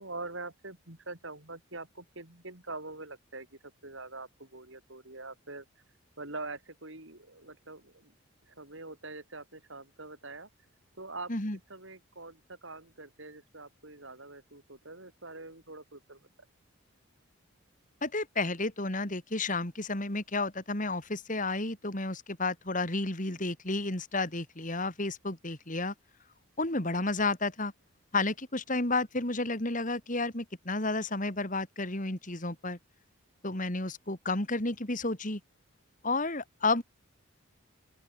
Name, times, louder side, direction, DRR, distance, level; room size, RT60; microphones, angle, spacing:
voice 1, 0.0-3.5 3.8-5.6 6.2-8.1 8.5-10.5 11.0-11.3 11.7-16.2, right 3 dB, 60° right, 4.8 m, -44 dB
voice 2, 18.0-25.9 26.6-27.7 28.1-32.8 33.4-35.4 36.0-36.8, left 2 dB, 40° left, 3.2 m, -31 dB
open air
head